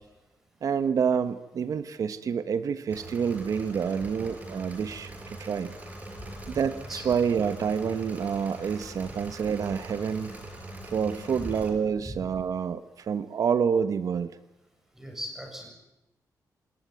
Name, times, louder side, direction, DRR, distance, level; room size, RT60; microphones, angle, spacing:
voice 1, 0.6-5.7 6.5-10.3 10.8-14.3, right 7 dB, 60° right, 12 dB, 1.2 m, -28 dB
Engine / Mechanisms, 2.9-11.7, right 1 dB, 25° right, 6.0 m, -42 dB
voice 2, 6.2-6.6 6.9-7.0 11.4-11.5 12.0-12.2 15.0-15.7, equal, 5° right, 2 dB, 7.5 m, -39 dB
28.0 x 20.0 x 9.4 m, 0.94 s
wide cardioid pair, 160°, 7 cm